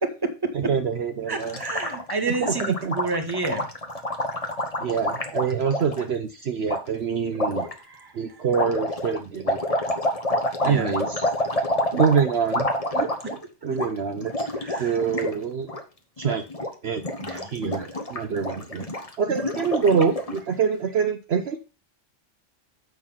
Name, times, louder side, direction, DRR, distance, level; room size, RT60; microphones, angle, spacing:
voice 1, 0.0-0.7 1.3-3.7 7.8-8.1 10.6-11.0 14.6-14.9 17.2-17.5, right 3 dB, 20° right, 5 dB, 1.4 m, -29 dB
voice 2, 0.5-1.6 2.4-3.0 4.8-7.7 8.1-9.6 10.6-11.3 11.9-12.7 12.9-14.5 14.8-15.7 16.2-16.4 16.8-17.0 17.5-18.9 19.2-21.6, right 6 dB, 60° right, 6 dB, 1.0 m, -25 dB
Gurgling, 1.4-6.0 6.7-6.8 7.3-7.7 8.5-13.4 13.7-13.9 14.2-15.3 15.6-15.8 16.2-16.7 17.0-20.4, left 1 dB, 30° left, 1.3 m, -28 dB
7.6 x 6.3 x 5.6 m, 0.33 s
omnidirectional pair, 1.3 m